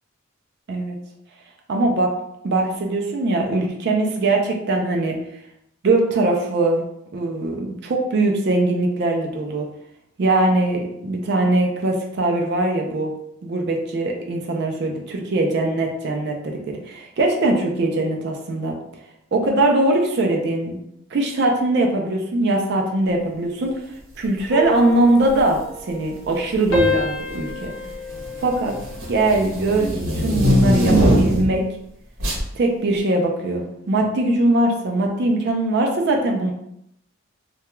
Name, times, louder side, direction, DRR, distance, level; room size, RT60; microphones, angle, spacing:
voice 1, 1.7-2.2 2.4-5.2 5.8-6.8 7.1-9.7 10.2-13.1 13.4-18.8 19.3-20.8 21.1-23.8 24.2-27.7 28.4-28.8 29.1-31.7 32.5-36.5, right 2 dB, 55° right, 2 dB, 0.4 m, -21 dB
sound 1, 24.5-26.4 26.7-29.3 29.7-30.1, left 2 dB, 65° left, 0.7 m, -28 dB
sound 2, 25.3-25.6 26.5-27.0 27.3-31.6 32.2-32.5, equal, 85° right, 0.9 m, -21 dB
2.2 x 2.2 x 2.9 m, 0.77 s
head